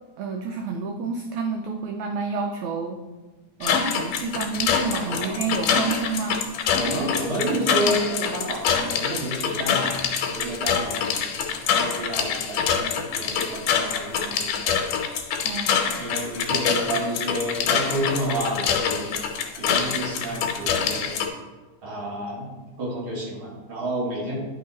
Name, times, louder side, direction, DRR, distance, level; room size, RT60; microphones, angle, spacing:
voice 1, 0.2-3.0 3.6-6.4 15.4-15.9, right 4 dB, 80° right, 4 dB, 1.6 m, -29 dB
sound 1, 3.6-21.3, left 7 dB, 80° left, 2.2 m, -25 dB
voice 2, 5.0-5.5 6.7-9.9 10.3-14.7 16.0-19.1 19.6-21.1 21.8-22.5 22.8-24.4, right 1 dB, 45° right, -5 dB, 2.2 m, -30 dB
10.5 x 3.5 x 4.0 m, 1.2 s
omnidirectional pair, 3.8 m